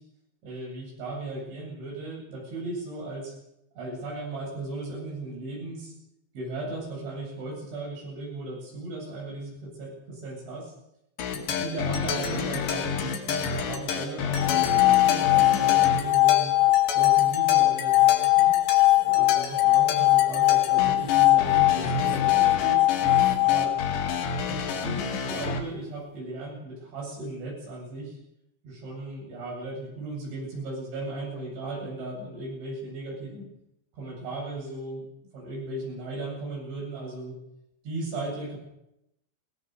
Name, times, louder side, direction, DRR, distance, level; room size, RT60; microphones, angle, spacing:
voice 1, 0.4-3.3 3.8-5.9 6.4-10.7 11.3-16.5 16.9-18.5 19.0-22.8 23.4-23.8 24.5-25.0 25.3-28.2 28.6-33.5 33.9-35.1 35.3-37.4 37.8-38.6, right 2 dB, 75° right, -1 dB, 10.5 m, -36 dB
sound 1, 11.2-25.6, left 5 dB, 70° left, 4.3 m, -31 dB
sound 2, 14.4-24.5, left 17 dB, 90° left, 1.8 m, -21 dB
21.5 x 20.0 x 6.8 m, 0.81 s
omnidirectional pair, 5.4 m